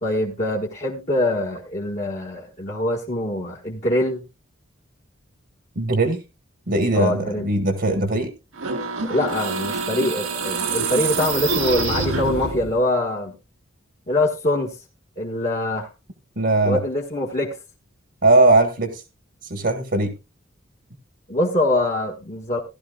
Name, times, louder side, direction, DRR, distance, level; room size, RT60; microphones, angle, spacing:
voice 1, 0.0-4.2 6.9-7.5 9.1-13.4 14.1-14.8 15.2-15.9 16.6-17.5 21.3-22.6, left 1 dB, 35° left, -3 dB, 1.3 m, -23 dB
voice 2, 5.7-6.2 6.7-8.3 16.4-16.8 18.2-19.0 19.5-20.1, right 2 dB, 55° right, 6 dB, 1.4 m, -19 dB
sound 1, 8.5-12.8, right 4 dB, 85° right, 1.8 m, -26 dB
15.5 x 12.0 x 2.3 m, 0.27 s
head